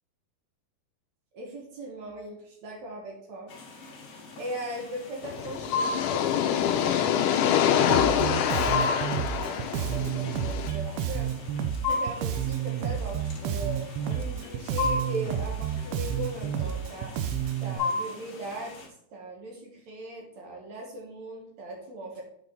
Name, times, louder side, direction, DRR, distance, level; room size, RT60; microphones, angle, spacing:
voice 1, 1.3-3.5 4.4-11.3 11.8-17.1 17.6-18.7 19.1-22.2, right 1 dB, 60° right, -1 dB, 2.1 m, -39 dB
sound 1, 3.5-18.9, left 3 dB, 60° left, 1.4 m, -36 dB
sound 2, 5.2-10.7, left 9 dB, 80° left, 1.8 m, -26 dB
Bass guitar, 7.9-17.8, right 9 dB, 85° right, 2.5 m, -30 dB
8.2 x 4.6 x 3.9 m, 0.72 s
omnidirectional pair, 4.4 m